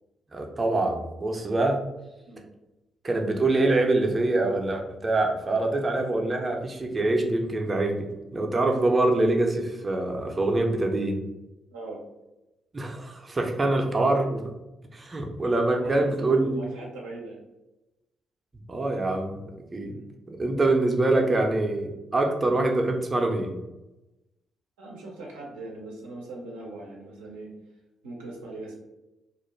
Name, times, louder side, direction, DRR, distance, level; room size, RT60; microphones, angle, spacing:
voice 1, 0.3-1.8 3.0-8.0 8.3-11.2 12.7-14.5 14.9-16.6 18.7-19.4 19.7-19.9 20.3-23.5, right 2 dB, 30° right, 2 dB, 0.5 m, -24 dB
voice 2, 11.7-12.0 15.8-17.4 19.8-20.0 24.8-27.5 28.0-28.7, right 2 dB, 90° right, -3 dB, 0.5 m, -40 dB
2.4 x 2.1 x 3.1 m, 0.98 s
hypercardioid pair, 45°, 0 cm